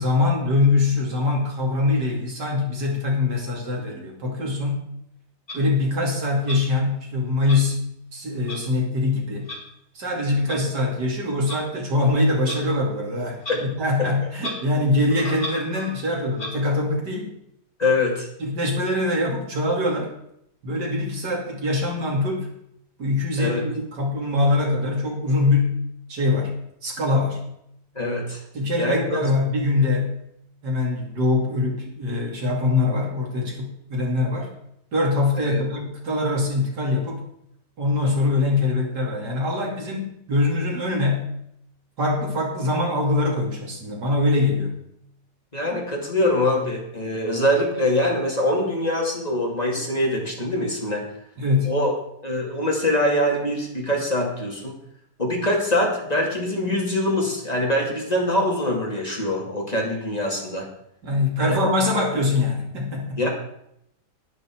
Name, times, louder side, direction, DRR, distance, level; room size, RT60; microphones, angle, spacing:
voice 1, 0.0-4.8 5.5-7.8 8.1-9.5 9.9-17.3 18.4-20.1 20.6-22.5 23.0-25.8 26.1-27.4 28.5-30.2 30.6-34.5 34.9-37.2 37.8-41.3 42.0-44.8 51.4-51.7 61.0-63.2, left 2 dB, 85° right, -1 dB, 3.3 m, -23 dB
Clock, 5.5-5.6 6.4-6.6 7.5-7.6 8.5-8.6 9.5-9.6 10.5-10.6 11.5-11.6 12.4-12.6 13.4-13.6 13.9-14.0 14.4-14.6 15.1-16.0 16.3-16.5, left 1 dB, 45° left, 4.4 m, -34 dB
voice 2, 17.8-18.3 23.4-23.6 27.9-28.4 28.8-29.2 35.4-35.6 45.5-51.0 51.7-51.9 52.2-54.7 55.2-60.7 61.4-61.6 63.2-63.3, left 1 dB, 25° left, -1 dB, 2.5 m, -23 dB
11.0 x 11.0 x 4.6 m, 0.75 s
omnidirectional pair, 1.8 m